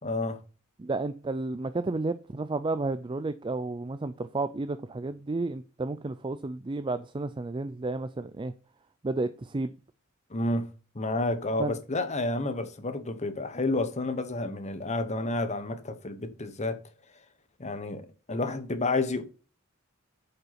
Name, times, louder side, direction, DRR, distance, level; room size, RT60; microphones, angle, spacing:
voice 1, 0.0-0.4 10.3-10.7 10.9-16.8 17.6-18.0 18.3-19.2, left 2 dB, 35° left, 1.1 m, -30 dB
voice 2, 0.8-8.5 9.0-9.7 11.6-11.7, right 3 dB, 25° right, 0.4 m, -32 dB
8.0 x 5.6 x 5.8 m
head